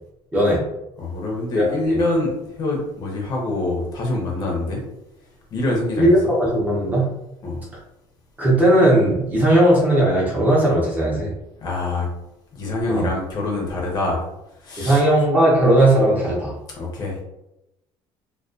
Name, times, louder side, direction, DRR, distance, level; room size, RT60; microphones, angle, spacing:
voice 1, 1.0-4.8 5.5-6.1 7.4-7.6 11.6-12.1 12.5-14.2 14.6-15.0 16.8-17.2, left 2 dB, 40° left, -1 dB, 0.6 m, -25 dB
voice 2, 1.5-2.0 6.0-7.1 8.4-11.3 12.9-13.1 14.8-16.5, right 1 dB, 15° right, -5 dB, 0.6 m, -17 dB
2.3 x 2.2 x 2.4 m, 0.86 s
cardioid pair, 170°, 11 cm